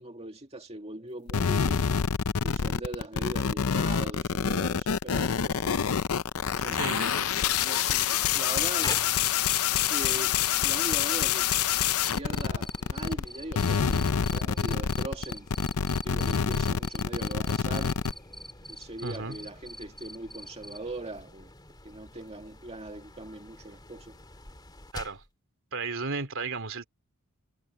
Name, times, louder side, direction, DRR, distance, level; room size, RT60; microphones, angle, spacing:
voice 1, 0.0-1.9 2.4-5.9 6.6-6.8 7.6-9.1 9.9-10.4 10.6-11.5 12.1-15.5 16.0-18.0 18.7-21.5 21.8-24.2, right 2 dB, 30° right, 2.2 m, -40 dB
sound 1, 1.3-13.2 13.5-18.1, left 7 dB, 70° left, 0.6 m, -27 dB
voice 2, 6.7-7.3 19.0-19.4 24.9-25.2 25.7-26.9, right 4 dB, 60° right, 3.1 m, -34 dB
sound 2, 8.8-25.3, left 2 dB, 20° left, 2.6 m, -47 dB
Cricket, 9.1-20.8, equal, ahead, 1.0 m, -44 dB
head